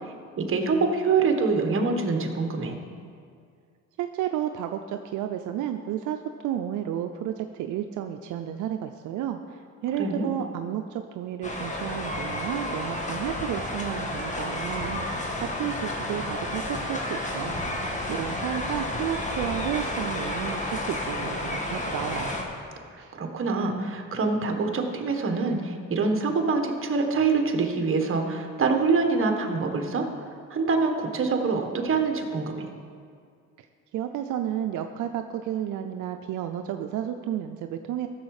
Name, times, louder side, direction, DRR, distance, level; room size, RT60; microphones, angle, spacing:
voice 1, 0.4-2.8 10.0-10.3 23.1-30.1 30.5-32.7, right 4 dB, 45° right, 4 dB, 1.4 m, -25 dB
voice 2, 4.0-15.1 15.4-17.6 18.1-22.4 23.0-23.1 33.6-33.7 33.9-38.1, right 10 dB, 80° right, 6 dB, 0.5 m, -32 dB
sound 1, 11.4-22.4, left 1 dB, 25° left, 1.6 m, -31 dB
14.0 x 7.1 x 4.9 m, 2.2 s
cardioid pair, 90°, 30 cm